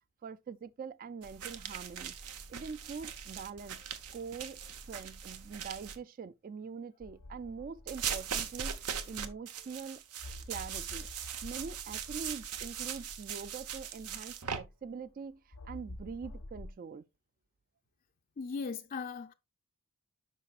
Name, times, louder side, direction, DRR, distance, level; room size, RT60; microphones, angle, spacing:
voice 1, 0.2-2.2 2.5-3.8 4.1-4.6 4.9-8.8 9.1-10.0 10.5-11.1 11.4-17.0, right 5 dB, 40° right, 0.3 m, -44 dB
sound 1, 1.2-6.0 7.9-14.6, right 8 dB, 90° right, 0.9 m, -40 dB
sound 2, 7.0-9.6 10.2-14.9 15.5-16.7, left 1 dB, 75° left, 0.7 m, -49 dB
voice 2, 18.4-19.3, left 5 dB, 40° left, 0.4 m, -38 dB
9.7 x 5.9 x 2.4 m
head